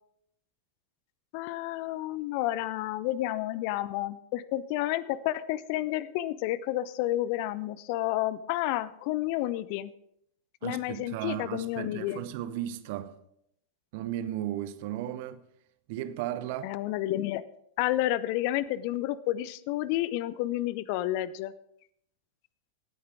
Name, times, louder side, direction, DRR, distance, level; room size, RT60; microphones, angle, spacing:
voice 1, 1.3-9.9 10.6-12.2 16.6-17.4 17.8-21.5, left 15 dB, 45° left, 0.5 m, -30 dB
voice 2, 10.6-13.1 13.9-15.4 15.9-16.8, right 12 dB, 50° right, 0.9 m, -35 dB
18.0 x 9.4 x 3.6 m
figure-of-eight pair, 90°, 0 cm